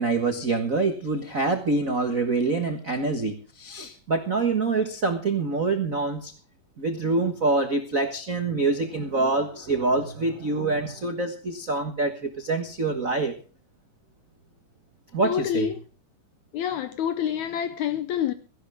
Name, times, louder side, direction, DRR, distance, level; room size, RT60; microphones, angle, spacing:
voice 1, 0.0-6.3 6.8-13.3 15.1-15.7, right 3 dB, 65° right, 0.8 m, -25 dB
voice 2, 15.2-15.8 16.5-18.3, left 9 dB, 75° left, 1.8 m, -27 dB
17.0 x 15.0 x 3.5 m
omnidirectional pair, 4.1 m